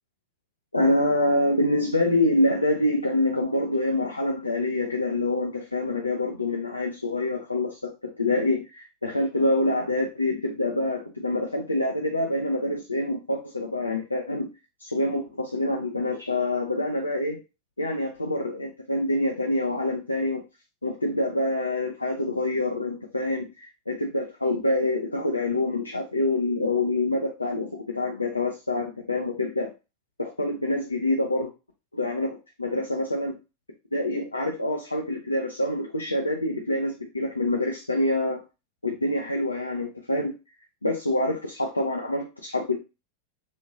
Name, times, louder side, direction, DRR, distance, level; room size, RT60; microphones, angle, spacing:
voice 1, 0.7-14.5 14.8-17.4 17.8-20.4 20.8-29.7 30.2-31.5 31.9-33.3 33.9-38.4 38.8-40.3 40.8-42.8, left 1 dB, 80° left, 2 dB, 0.4 m, -26 dB
3.1 x 2.5 x 2.4 m, 0.29 s
figure-of-eight pair, 90°, 0 cm